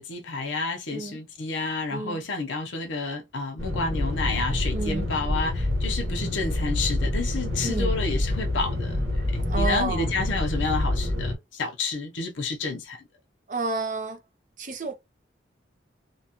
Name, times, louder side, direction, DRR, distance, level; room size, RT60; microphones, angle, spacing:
voice 1, 0.0-9.0 9.3-13.1, left 3 dB, 85° left, 0.7 m, -30 dB
voice 2, 0.9-1.2 1.9-2.2 4.7-5.1 7.6-8.0 9.5-10.1 13.5-14.2 14.6-14.9, right 3 dB, 45° right, 0.6 m, -30 dB
sound 1, 3.6-11.3, left 1 dB, 65° right, 1.6 m, -27 dB
2.8 x 2.3 x 2.9 m
head